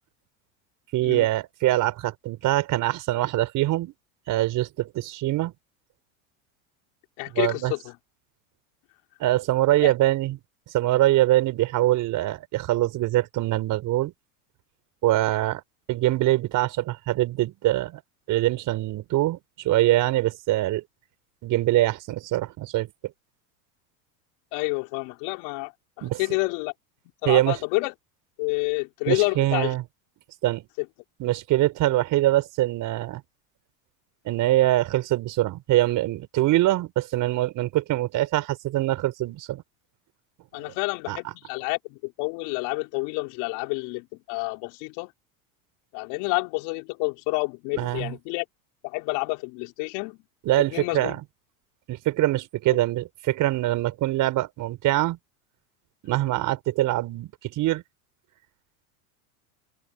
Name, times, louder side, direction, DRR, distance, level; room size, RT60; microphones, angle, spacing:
voice 1, 0.9-3.9 4.3-5.5 7.3-7.7 9.2-10.4 10.7-14.1 15.0-15.6 15.9-18.0 18.3-20.8 21.4-22.9 26.0-26.2 27.2-27.6 29.1-29.8 30.4-30.6 31.2-33.2 34.2-39.6 41.1-41.2 47.7-48.1 50.4-51.2 51.9-55.2 56.0-57.8, right 16 dB, 45° right, 4.9 m, -23 dB
voice 2, 7.2-7.9 9.8-9.9 24.5-25.7 26.0-26.7 27.2-27.9 28.4-29.7 30.8-30.9 40.5-45.1 45.9-48.4 48.8-50.2 50.7-51.2, left 28 dB, 60° left, 3.8 m, -29 dB
open air
supercardioid pair, 125°, 43 cm